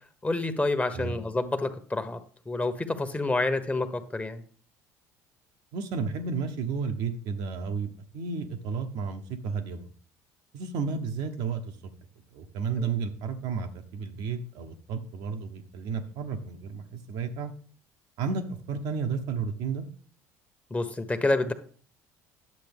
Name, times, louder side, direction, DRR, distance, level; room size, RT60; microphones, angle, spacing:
voice 1, 0.2-2.2 2.5-4.4 12.8-12.9 20.7-21.5, left 2 dB, 15° left, 8 dB, 1.3 m, -28 dB
voice 2, 5.7-9.9 10.5-11.6 12.3-17.5 18.2-19.9, right 5 dB, 65° right, 5 dB, 1.1 m, -32 dB
11.0 x 7.6 x 3.6 m, 0.43 s
hypercardioid pair, 60°, 8 cm